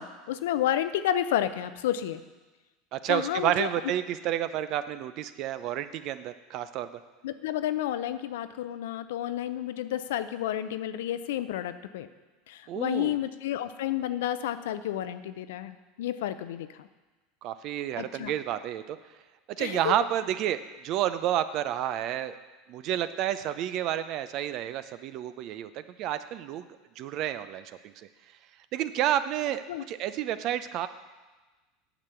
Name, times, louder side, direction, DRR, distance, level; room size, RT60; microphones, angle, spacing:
voice 1, 0.0-2.2 3.1-3.7 7.2-12.1 12.5-16.9 18.0-18.3 19.6-19.9 29.7-29.8, left 11 dB, 75° left, 12 dB, 0.5 m, -31 dB
voice 2, 2.9-7.0 12.7-13.2 17.4-19.0 19.6-22.4 22.7-26.6 27.0-28.1 28.7-30.9, right 11 dB, 55° right, 12 dB, 0.6 m, -30 dB
8.7 x 6.2 x 6.9 m, 1.2 s
hypercardioid pair, 90°, 0 cm